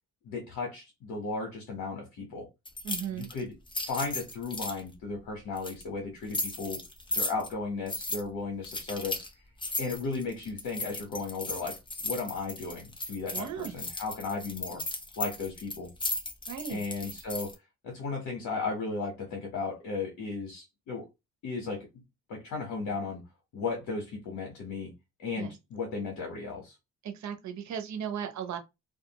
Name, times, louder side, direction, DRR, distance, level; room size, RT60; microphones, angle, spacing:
voice 1, 0.2-2.5 3.1-3.5 3.9-6.8 7.1-9.2 9.8-11.8 12.0-14.8 15.2-15.9 16.7-17.5 17.8-21.1 21.4-21.9 22.3-23.2 23.5-24.9 25.2-26.8, left 4 dB, 80° left, 1.1 m, -35 dB
sound 1, 2.6-4.8 5.6-5.8 6.3-7.5 7.9-8.2 8.6-9.3 9.6-17.5, left 2 dB, 15° left, 0.7 m, -36 dB
voice 2, 2.8-3.3 13.3-13.7 16.5-17.1 25.4-25.5 27.0-28.6, right 8 dB, 65° right, 0.9 m, -36 dB
2.4 x 2.3 x 2.9 m
cardioid pair, 90°, 30 cm